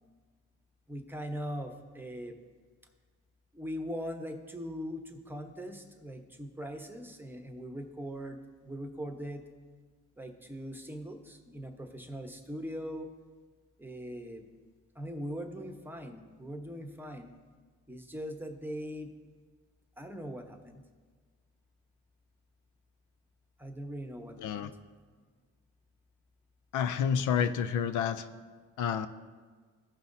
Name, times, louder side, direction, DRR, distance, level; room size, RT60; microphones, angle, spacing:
voice 1, 0.9-2.3 3.5-9.4 10.2-13.1 13.8-14.4 14.9-17.3 17.9-19.1 20.0-20.8 23.6-24.8, equal, 5° right, 4 dB, 0.9 m, -41 dB
voice 2, 24.4-24.7 26.7-28.3 28.8-29.1, left 7 dB, 80° left, 13 dB, 0.5 m, -29 dB
16.0 x 5.6 x 2.7 m, 1.5 s
cardioid pair, 90°, 30 cm